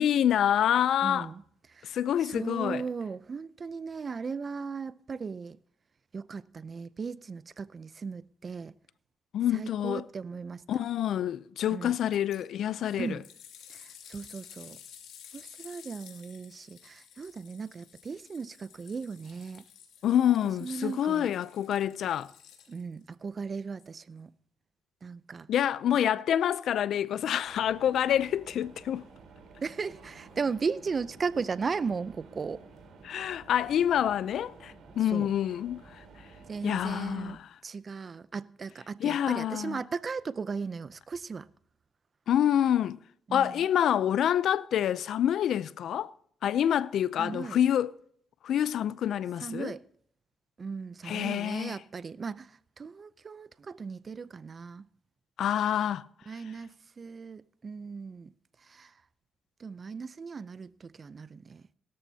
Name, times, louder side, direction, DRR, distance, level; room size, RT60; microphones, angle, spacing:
voice 1, 0.0-1.3 1.8-2.8 9.3-10.0 10.7-13.2 20.0-22.3 25.5-29.0 33.0-35.8 36.6-37.5 39.0-39.8 42.3-43.0 43.3-46.1 46.4-47.9 48.4-49.7 51.1-51.8 55.4-56.1, left 10 dB, 70° left, 0.5 m, -27 dB
voice 2, 1.0-1.4 1.7-1.9 2.2-5.6 6.1-8.7 9.5-10.6 11.7-12.0 13.0-13.2 13.7-14.8 15.3-19.6 20.6-21.3 22.7-24.3 25.0-25.5 29.6-32.6 35.1-35.3 36.5-41.5 43.3-43.7 47.2-47.6 49.4-49.8 50.6-54.9 56.3-58.3 58.6-58.9 59.6-61.6, right 5 dB, 40° right, 0.6 m, -37 dB
sound 1, 12.1-12.4 12.8-23.0 23.8-23.9, left 9 dB, 85° left, 2.8 m, -53 dB
sound 2, 27.4-37.3, right 4 dB, 70° right, 3.9 m, -52 dB
17.0 x 13.5 x 2.8 m
cardioid pair, 90°, 0 cm